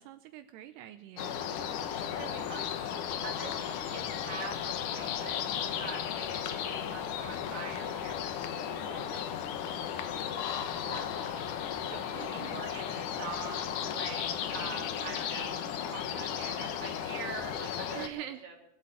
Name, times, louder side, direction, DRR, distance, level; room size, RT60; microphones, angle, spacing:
voice 1, 0.0-1.4 12.2-12.7 14.6-15.2 17.9-18.5, right 13 dB, 80° right, 9 dB, 2.7 m, -45 dB
sound 1, 1.2-18.1, left 9 dB, 70° left, 1.9 m, -35 dB
voice 2, 2.1-2.7 3.0-5.5 5.8-9.2 9.9-18.5, right 5 dB, 20° right, 0 dB, 2.6 m, -45 dB
21.0 x 8.4 x 7.3 m, 0.90 s
omnidirectional pair, 5.0 m